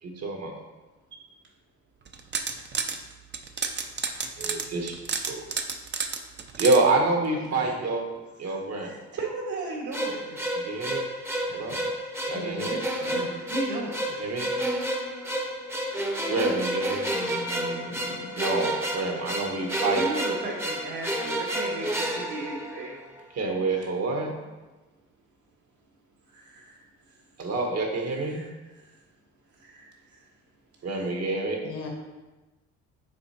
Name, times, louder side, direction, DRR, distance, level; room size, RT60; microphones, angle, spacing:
voice 1, 0.0-0.5 4.4-4.9 5.3-5.4 6.6-8.0 8.4-8.9 10.5-11.0 11.5-11.8 12.3-12.8 14.2-14.5 16.3-17.1 18.4-20.0 23.3-24.3 27.4-28.4 30.8-31.6, right 3 dB, 60° right, 2 dB, 1.4 m, -27 dB
sound 1, 2.1-3.0 3.3-6.8, right 5 dB, 35° right, 0.6 m, -30 dB
voice 2, 7.4-7.8 8.4-10.4 11.4-11.8 12.2-12.7 13.0-14.3 19.9-23.1 23.7-23.9 26.3-27.2 28.3-29.0 29.6-30.2 30.9-31.1, right 2 dB, 75° right, -3 dB, 2.1 m, -37 dB
sound 2, 9.9-23.2, right 1 dB, 10° right, 0.8 m, -30 dB
voice 3, 12.3-12.7 13.0-13.3 17.1-18.3 31.6-31.9, left 2 dB, 80° left, 0 dB, 1.8 m, -38 dB
6.8 x 4.0 x 4.3 m, 1.1 s
cardioid pair, 90°, 30 cm